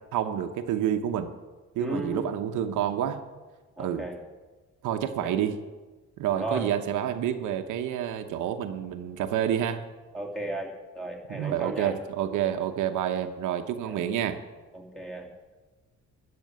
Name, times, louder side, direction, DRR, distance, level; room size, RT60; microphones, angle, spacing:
voice 1, 0.1-1.3 1.7-3.2 3.8-4.1 4.8-5.6 6.2-9.8 11.3-14.4, right 10 dB, 85° right, 7 dB, 0.9 m, -28 dB
voice 2, 1.8-2.3 3.8-4.2 5.2-5.3 6.3-6.7 10.1-10.7 10.9-11.9 13.9-14.0 14.7-15.3, right 2 dB, ahead, -1 dB, 2.9 m, -34 dB
12.5 x 6.2 x 9.4 m, 1.3 s
cardioid pair, 90°, 30 cm